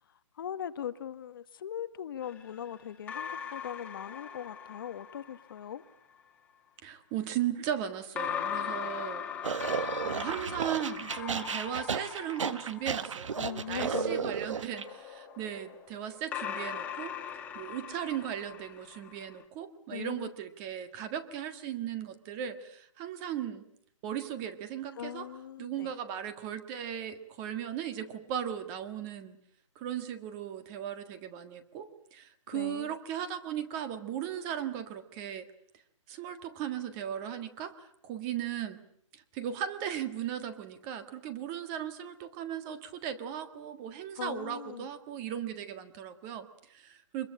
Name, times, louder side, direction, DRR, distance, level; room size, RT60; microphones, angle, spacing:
voice 1, 0.0-5.8 13.4-14.3 19.9-20.3 25.0-25.9 32.5-32.9 44.1-44.9, left 9 dB, 40° left, 12 dB, 1.2 m, -40 dB
sound 1, 2.2-5.6 8.2-13.6 14.7-19.4, left 8 dB, 10° left, 2.1 m, -40 dB
voice 2, 6.8-9.5 10.0-17.1 17.5-23.6 24.0-25.2 25.6-29.4 29.7-35.5 36.1-38.8 39.1-47.3, right 9 dB, 20° right, 10 dB, 1.7 m, -37 dB
sound 2, 9.4-14.8, right 6 dB, 65° right, 1.4 m, -34 dB
25.0 x 22.0 x 8.8 m, 0.69 s
hypercardioid pair, 165°, 17 cm